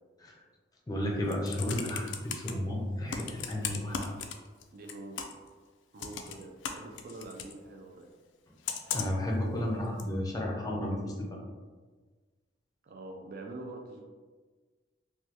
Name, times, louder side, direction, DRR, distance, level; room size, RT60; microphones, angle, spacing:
voice 1, 0.9-4.1 8.9-11.3, left 1 dB, 20° left, -1 dB, 0.5 m, -32 dB
Computer keyboard, 1.1-2.5 3.1-4.6 4.9-5.5 6.0-7.5 8.7-9.3 10.0-10.1, left 7 dB, 80° left, 0.3 m, -37 dB
voice 2, 4.7-5.2 5.9-8.1 12.8-14.0, right 2 dB, 55° right, 1 dB, 0.4 m, -45 dB
3.2 x 2.2 x 2.8 m, 1.4 s
head